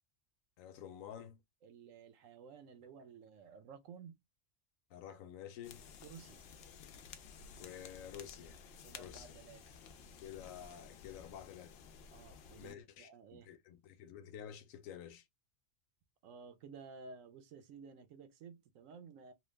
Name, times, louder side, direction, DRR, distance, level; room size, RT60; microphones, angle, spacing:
voice 1, 0.6-1.4 4.9-5.9 7.6-8.6 9.0-9.3 10.2-11.8 12.6-15.3, left 9 dB, 85° left, 1.0 m, -50 dB
voice 2, 1.6-4.2 6.0-6.4 8.8-9.6 12.1-13.5 16.2-19.3, right 5 dB, 80° right, 1.0 m, -54 dB
sound 1, 5.6-12.7, left 6 dB, 65° left, 0.7 m, -54 dB
3.0 x 2.3 x 3.1 m
omnidirectional pair, 1.3 m